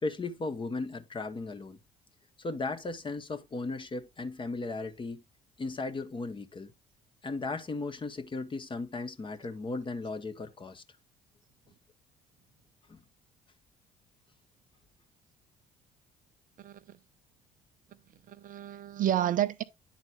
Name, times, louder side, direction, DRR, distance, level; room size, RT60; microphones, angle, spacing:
voice 1, 0.0-1.8 2.4-5.2 5.6-6.7 7.2-10.8 12.9-13.0, left 3 dB, 25° left, 1.1 m, -36 dB
voice 2, 16.6-17.0 18.3-19.6, right 11 dB, 45° right, 0.6 m, -30 dB
9.9 x 4.1 x 3.4 m
hypercardioid pair, 55°, 18 cm